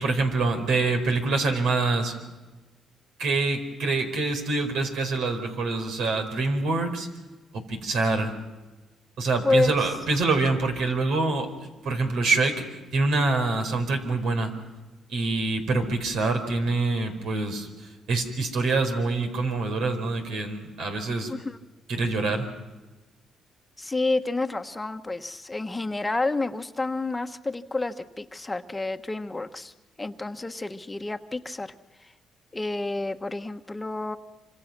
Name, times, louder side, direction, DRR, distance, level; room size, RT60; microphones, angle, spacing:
voice 1, 0.0-2.2 3.2-7.1 7.5-8.3 9.2-11.5 11.8-14.5 15.1-21.3 21.9-22.5, right 3 dB, 80° right, 5 dB, 4.7 m, -25 dB
voice 2, 9.4-9.7 21.3-21.6 23.8-31.7 32.0-32.1 32.5-34.2, left 2 dB, 15° left, 7 dB, 1.2 m, -29 dB
27.0 x 26.0 x 6.1 m, 1.2 s
cardioid pair, 90°, 0 cm